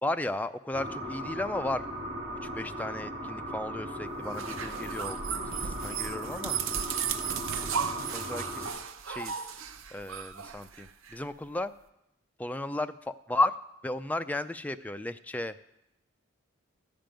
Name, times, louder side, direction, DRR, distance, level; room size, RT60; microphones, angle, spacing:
voice 1, 0.0-1.8 2.4-6.6 7.9-8.8 9.1-9.4 9.9-11.7 12.4-13.5 13.8-15.6, left 2 dB, 10° left, 10 dB, 0.4 m, -34 dB
sound 1, 0.7-8.7, equal, 30° right, 2.9 m, -38 dB
sound 2, 4.2-11.2, right 7 dB, 85° right, 0.7 m, -35 dB
12.5 x 5.2 x 9.0 m, 0.84 s
head